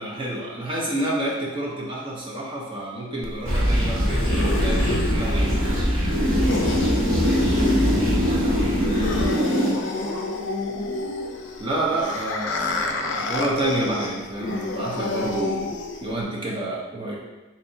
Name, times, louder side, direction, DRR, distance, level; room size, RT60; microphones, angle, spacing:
voice 1, 0.0-5.8 8.8-9.0 11.6-17.2, right 1 dB, 25° right, -5 dB, 0.9 m, -29 dB
sound 1, 3.2-16.2, left 3 dB, 60° left, 0.4 m, -30 dB
sound 2, 3.5-9.7, equal, 65° right, 1.2 m, -21 dB
voice 2, 7.0-7.6 8.2-10.3, equal, 5° right, -10 dB, 1.3 m, -37 dB
4.0 x 3.4 x 2.8 m, 1.1 s
head